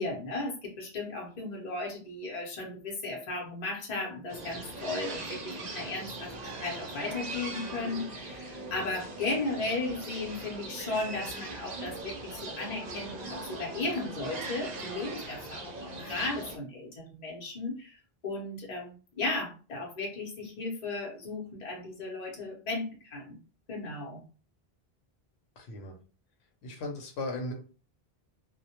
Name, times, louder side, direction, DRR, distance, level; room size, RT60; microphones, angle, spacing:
voice 1, 0.0-18.0 18.2-23.4 23.7-24.2, left 3 dB, 45° left, -2 dB, 0.8 m, -35 dB
sound 1, 4.3-16.6, right 2 dB, 55° right, 0.5 m, -40 dB
voice 2, 25.6-25.9 26.6-27.5, left 2 dB, 85° left, 1 dB, 0.9 m, -36 dB
2.1 x 2.1 x 2.8 m, 0.36 s
omnidirectional pair, 1.1 m